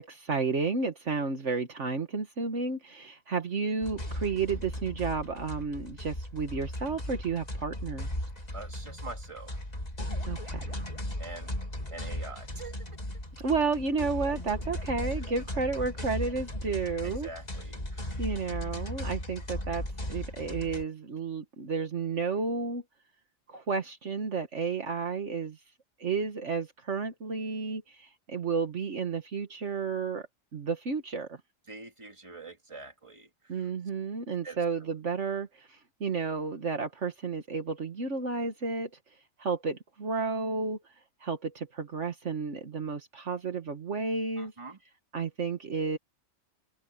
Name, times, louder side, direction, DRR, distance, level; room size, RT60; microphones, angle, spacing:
voice 1, 0.0-8.1 10.3-10.9 13.4-17.3 18.2-22.8 23.5-25.6 26.0-30.3 30.5-31.4 33.5-38.9 39.4-40.8 41.2-44.5 45.1-46.0, right 4 dB, 60° right, 1.8 m, -32 dB
sound 1, 3.8-20.8, left 1 dB, 30° left, 2.9 m, -37 dB
voice 2, 8.5-9.5 11.2-11.5 11.9-12.9 15.2-15.3 17.0-18.2 31.7-33.7 34.4-34.6 44.4-44.8, right 3 dB, 25° right, 2.3 m, -45 dB
omnidirectional pair, 1.4 m